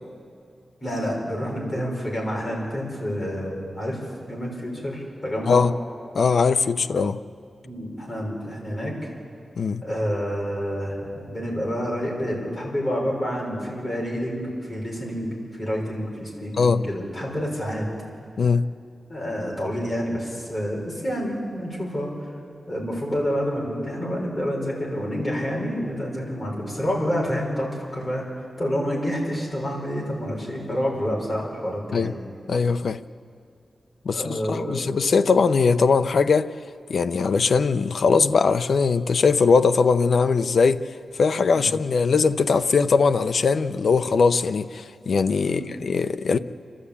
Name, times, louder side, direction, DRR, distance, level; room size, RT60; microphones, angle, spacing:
voice 1, 0.8-5.6 7.6-8.9 9.8-17.9 19.1-22.3 22.7-32.1 34.1-34.9 41.4-41.7 45.4-45.7, equal, 20° left, -3 dB, 5.6 m, -28 dB
voice 2, 6.1-7.2 9.6-9.8 16.6-16.8 18.4-18.6 31.9-32.1 32.5-33.0 34.0-36.5 36.9-40.8 41.2-46.4, left 5 dB, 60° left, 10 dB, 0.6 m, -20 dB
28.5 x 12.5 x 8.5 m, 2.4 s
wide cardioid pair, 165°, 0 cm